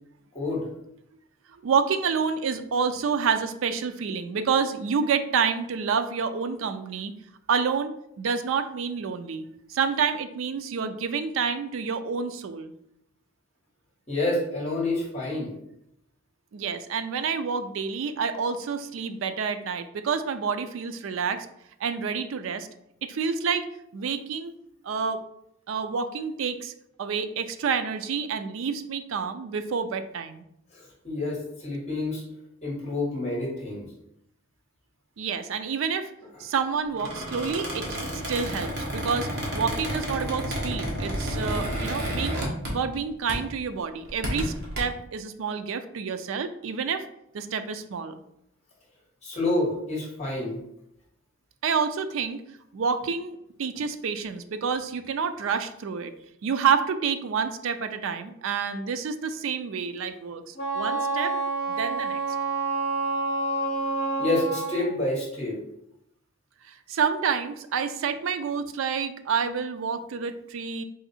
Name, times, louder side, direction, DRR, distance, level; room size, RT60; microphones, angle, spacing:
voice 1, 0.3-0.7 14.1-15.5 30.7-32.2 32.6-33.9 49.2-50.6 64.2-65.6, left 2 dB, 30° left, -2 dB, 1.3 m, -28 dB
voice 2, 1.6-7.1 7.5-12.7 16.5-21.5 21.8-22.7 23.0-23.7 23.9-24.5 24.8-25.2 25.7-26.7 27.0-30.4 35.2-36.1 36.4-37.9 38.3-47.1 47.3-48.2 51.6-52.4 52.7-56.1 56.4-61.3 61.7-62.2 66.6-70.8, right 6 dB, 75° right, 10 dB, 0.4 m, -28 dB
Squeak, 36.9-43.0 43.3-43.6 44.0-44.8, equal, 55° right, 1.1 m, -31 dB
Wind instrument woodwind instrument, 60.5-64.9, right 3 dB, 70° left, 0.7 m, -28 dB
3.7 x 2.6 x 4.1 m, 0.77 s
head